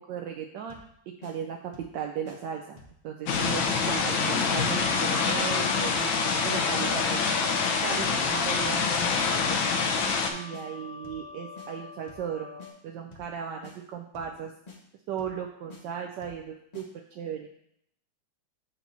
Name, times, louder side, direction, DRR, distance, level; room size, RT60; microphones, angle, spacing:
voice 1, 0.1-0.8 1.2-1.6 1.9-6.1 6.4-7.2 7.8-9.6 10.3-14.5 15.1-16.8 17.1-17.5, right 8 dB, 75° right, 2 dB, 1.1 m, -36 dB
sound 1, 0.7-0.9 1.2-1.3 1.7-2.0 2.3-2.4 2.8-3.0 3.3-3.4 3.8-4.0 4.3-4.4 4.8-5.1 5.4-5.5 5.9-6.1 6.4-6.5 6.9-7.1 7.4-7.5 7.9-8.2 8.5-8.6 9.0-9.2 9.5-9.6 10.0-10.2 10.5-10.7 11.0-11.3 11.6-11.7 12.1-12.3 12.6-12.7 13.1-13.3 13.6-13.8 14.1-14.4 14.7-14.8 15.2-15.4 15.7-15.8 16.2-16.4 16.7-16.9, left 4 dB, 35° left, 0.6 m, -48 dB
sound 2, 3.3-10.3, left 5 dB, 80° left, 1.5 m, -26 dB
sound 3, 4.6-12.7, left 6 dB, 55° left, 2.5 m, -42 dB
7.2 x 3.0 x 5.3 m, 0.70 s
omnidirectional pair, 2.1 m